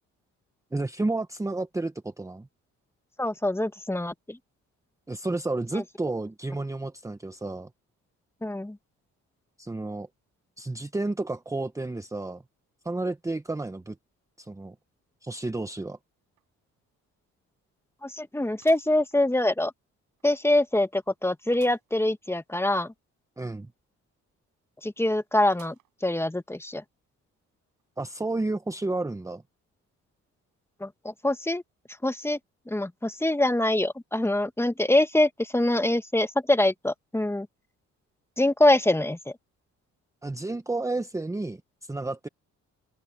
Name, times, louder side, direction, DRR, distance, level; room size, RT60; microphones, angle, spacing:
voice 1, 0.7-2.5 5.1-7.7 9.6-10.1 10.6-12.4 12.8-14.0 14.4-14.8 15.2-16.0 23.4-23.7 28.0-29.4 40.2-42.3, right 2 dB, 10° right, 0.9 m, -31 dB
voice 2, 3.2-4.4 5.7-5.8 8.4-8.8 18.0-19.7 20.2-22.9 24.8-25.7 26.0-26.8 30.8-31.6 32.0-32.4 32.7-37.5 38.4-39.3, left 1 dB, 10° left, 1.4 m, -24 dB
sound 1, 16.4-16.5 16.9-17.0 18.6-19.7 20.2-20.3 21.5-21.9 22.4-22.5 22.6-22.7 25.5-26.1 26.7-26.8 27.8-27.9, right 14 dB, 90° right, 7.3 m, -56 dB
open air
cardioid pair, 90°, 30 cm